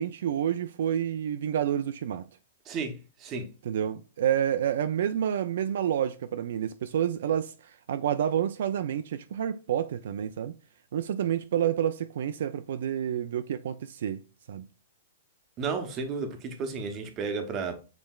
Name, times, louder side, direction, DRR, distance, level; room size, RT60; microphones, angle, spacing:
voice 1, 0.0-2.3 3.7-10.5 10.9-14.2 14.5-14.7, right 9 dB, 60° right, 0.3 m, -29 dB
voice 2, 2.7-3.5 15.6-17.8, right 4 dB, 20° right, 0.7 m, -33 dB
7.2 x 3.2 x 2.3 m
hypercardioid pair, 170°, 0 cm